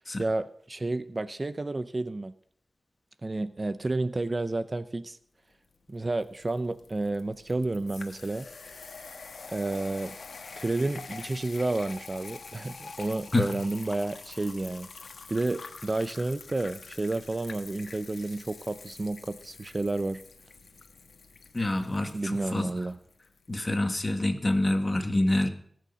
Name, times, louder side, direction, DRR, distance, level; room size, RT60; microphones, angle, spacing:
voice 1, 0.2-2.3 3.2-5.2 5.9-8.5 9.5-10.1 10.6-20.2 22.1-23.0, right 2 dB, 30° right, 13 dB, 0.6 m, -31 dB
sound 1, 5.7-23.7, left 4 dB, 70° left, 1.3 m, -46 dB
voice 2, 21.5-22.7 23.5-25.5, left 1 dB, 30° left, 6 dB, 1.6 m, -26 dB
18.5 x 6.4 x 6.8 m, 0.65 s
wide cardioid pair, 85°, 0 cm